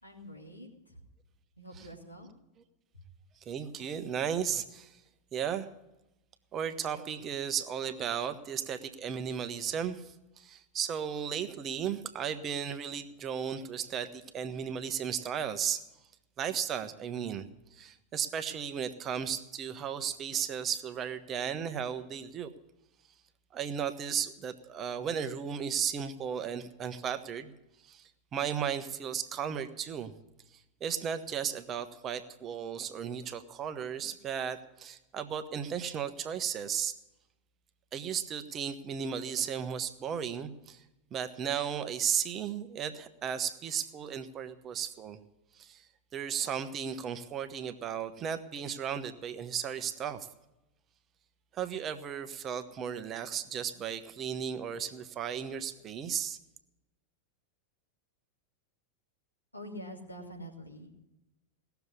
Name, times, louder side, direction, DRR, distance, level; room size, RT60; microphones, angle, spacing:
voice 1, 0.0-1.0 1.6-2.3 2.9-3.0 59.5-60.9, equal, 85° left, 1 dB, 2.7 m, -46 dB
voice 2, 3.5-5.0 5.3-5.7 6.5-15.8 16.4-17.4 17.7-22.5 23.5-27.5 27.8-30.1 30.5-37.0 37.9-40.8 41.1-45.2 45.5-45.9 46.1-50.3 51.5-56.4, right 8 dB, 30° right, 9 dB, 1.0 m, -35 dB
18.0 x 7.0 x 9.6 m, 0.93 s
figure-of-eight pair, 90°, 0 cm